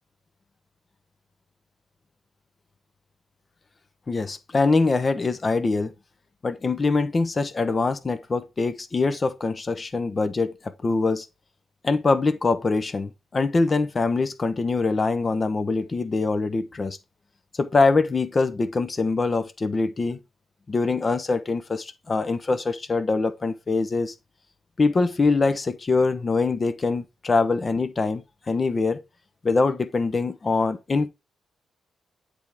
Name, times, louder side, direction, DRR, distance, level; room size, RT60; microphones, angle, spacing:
voice 1, 4.1-5.9 6.4-11.3 11.8-17.0 17.6-20.2 20.7-24.1 24.8-29.0 29.4-31.1, left 3 dB, 35° left, 0.8 m, -23 dB
8.1 x 3.6 x 4.6 m
cardioid pair, 70°, 0 cm